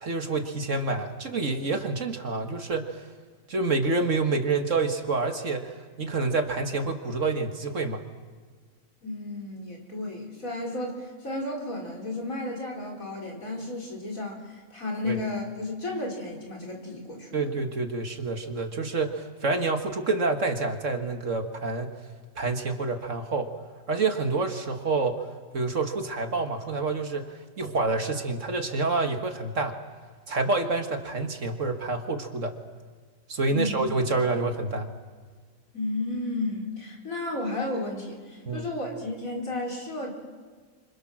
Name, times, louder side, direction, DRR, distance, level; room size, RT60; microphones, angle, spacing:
voice 1, 0.0-3.0 3.5-8.0 15.1-15.2 17.3-21.9 22.4-23.5 23.9-25.2 25.5-29.7 30.3-32.6 33.3-34.9 38.5-38.6, right 3 dB, 55° right, 5 dB, 2.1 m, -28 dB
voice 2, 9.0-17.5 33.5-33.8 35.7-40.1, left 2 dB, 60° left, -1 dB, 4.8 m, -33 dB
29.5 x 26.0 x 6.3 m, 1.5 s
omnidirectional pair, 1.6 m